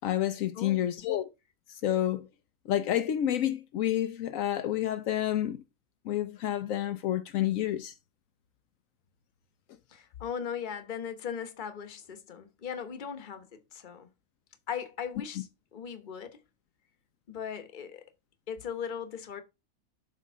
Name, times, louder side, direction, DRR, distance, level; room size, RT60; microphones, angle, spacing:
voice 1, 0.0-1.3 1.7-2.3 2.7-5.6 6.0-7.9, left 12 dB, 75° left, 1.0 m, -29 dB
voice 2, 0.5-1.0 9.9-14.1 14.7-16.4 17.3-18.1 18.5-19.4, left 7 dB, 40° left, 1.0 m, -38 dB
7.4 x 3.6 x 5.4 m
omnidirectional pair, 1.4 m